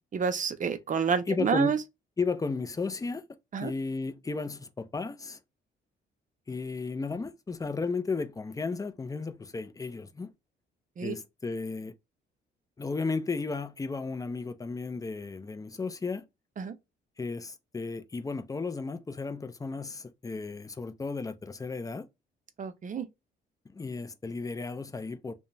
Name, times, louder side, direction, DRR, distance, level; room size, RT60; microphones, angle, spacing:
voice 1, 0.1-1.8 3.5-3.7 11.0-11.2 16.6-16.7 22.6-23.1, right 6 dB, 40° right, 0.6 m, -29 dB
voice 2, 1.3-1.8 2.2-3.2 3.6-5.4 6.5-10.3 11.0-11.9 12.8-16.3 17.2-22.1 23.7-25.3, left 4 dB, 15° left, 0.4 m, -34 dB
2.8 x 2.1 x 2.6 m
cardioid pair, 90°, 20 cm